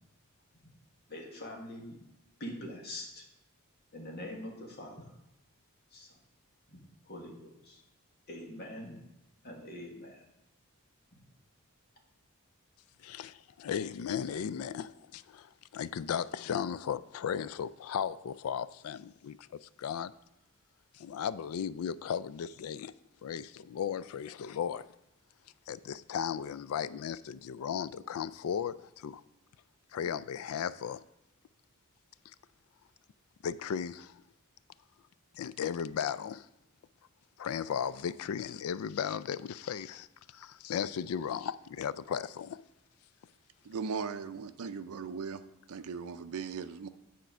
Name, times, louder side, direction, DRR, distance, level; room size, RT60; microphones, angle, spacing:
voice 1, 1.1-2.0 2.4-3.2 3.9-5.1 5.9-6.2 6.7-6.8 7.1-7.8 8.3-9.0 9.4-10.2, left 1 dB, 50° left, 1.7 m, -44 dB
voice 2, 13.0-20.1 20.9-22.9 23.2-24.9 25.7-29.2 29.9-31.0 32.3-32.4 33.4-34.2 35.3-36.5 37.4-42.6, left 8 dB, 75° left, 0.3 m, -36 dB
voice 3, 43.6-45.4 45.7-46.9, right 5 dB, 80° right, 0.5 m, -38 dB
9.3 x 4.4 x 6.1 m
head